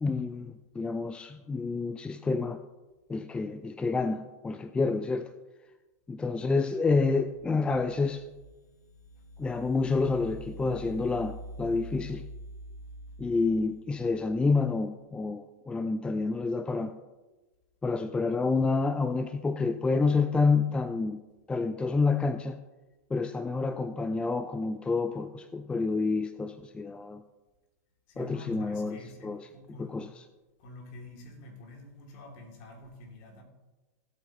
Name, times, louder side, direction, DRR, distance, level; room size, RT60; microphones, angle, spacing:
voice 1, 0.0-2.6 3.1-5.3 6.1-8.2 9.4-12.2 13.2-16.9 17.8-21.2 21.5-22.6 23.1-27.2 28.2-29.5 29.8-30.1, left 4 dB, 10° left, 0.4 m, -28 dB
sound 1, 7.2-14.6, right 1 dB, 80° left, 1.4 m, -46 dB
voice 2, 28.1-30.1 30.6-33.4, left 2 dB, 55° left, 2.8 m, -47 dB
16.5 x 8.5 x 3.0 m
hypercardioid pair, 105°, 9 cm